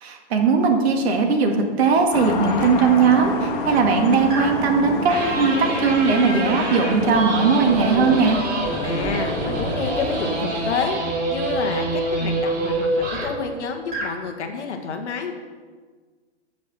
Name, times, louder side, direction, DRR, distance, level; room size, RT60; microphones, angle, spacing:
voice 1, 0.0-8.4, right 5 dB, 60° right, 3 dB, 2.1 m, -19 dB
sound 1, 2.1-10.7, left 4 dB, 45° left, 1.9 m, -29 dB
sound 2, 2.5-2.7 4.3-4.7 5.1-13.5 13.9-14.2, right 2 dB, 25° right, 3.3 m, -26 dB
voice 2, 8.8-15.3, left 5 dB, 75° left, 4 dB, 1.8 m, -29 dB
13.5 x 5.2 x 6.0 m, 1.5 s
hypercardioid pair, 125°, 35 cm